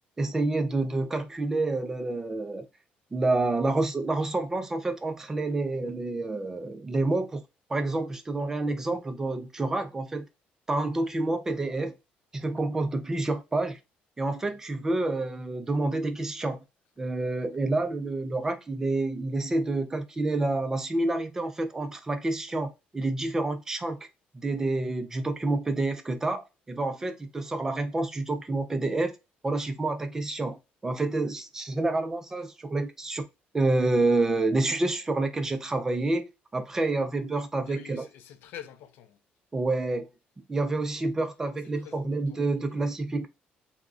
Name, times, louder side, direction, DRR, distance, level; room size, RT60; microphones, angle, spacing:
voice 1, 0.2-2.7 3.1-7.4 7.7-10.2 10.7-11.9 12.3-13.8 14.2-16.6 17.0-24.0 24.3-29.1 29.4-33.2 33.5-36.3 36.5-38.1 39.5-40.1 40.5-43.3, right 2 dB, 15° right, 0.3 m, -28 dB
voice 2, 37.7-39.2 41.8-42.8, left 10 dB, 75° left, 0.4 m, -47 dB
3.5 x 2.0 x 2.3 m
cardioid pair, 165°, 3 cm